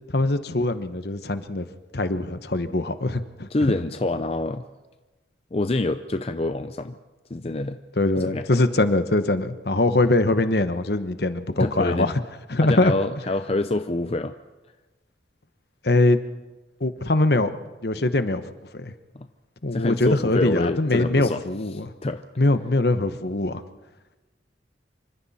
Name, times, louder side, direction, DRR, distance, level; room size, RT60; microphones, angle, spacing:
voice 1, 0.1-1.7 1.9-3.5 8.0-12.2 12.5-12.9 15.8-16.2 16.8-17.5 17.8-18.4 18.7-18.9 19.6-21.9 22.4-23.6, left 2 dB, 60° left, 11 dB, 1.1 m, -22 dB
voice 2, 3.5-4.6 5.5-7.0 7.3-7.8 8.2-8.5 11.6-12.1 12.6-14.3 19.1-19.3 19.7-21.4 21.7-22.2, left 2 dB, 35° left, 9 dB, 0.6 m, -26 dB
27.0 x 24.5 x 4.3 m, 1.2 s
head